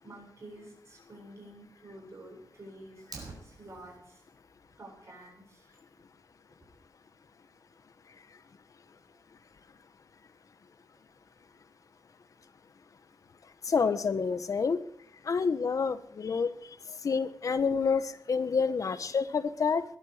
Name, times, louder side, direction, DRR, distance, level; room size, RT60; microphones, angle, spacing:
voice 1, 0.0-3.0 3.4-4.2 4.8-5.8 9.1-9.2 11.0-11.1 11.5-11.6, right 1 dB, 45° right, 0 dB, 7.8 m, -50 dB
Fire, 3.0-4.0, right 4 dB, 70° right, 5.9 m, -46 dB
voice 2, 13.7-14.8 15.2-16.5 17.0-19.8, left 5 dB, 55° left, 12 dB, 1.2 m, -28 dB
21.0 x 11.5 x 5.0 m, 0.67 s
wide cardioid pair, 145°, 7 cm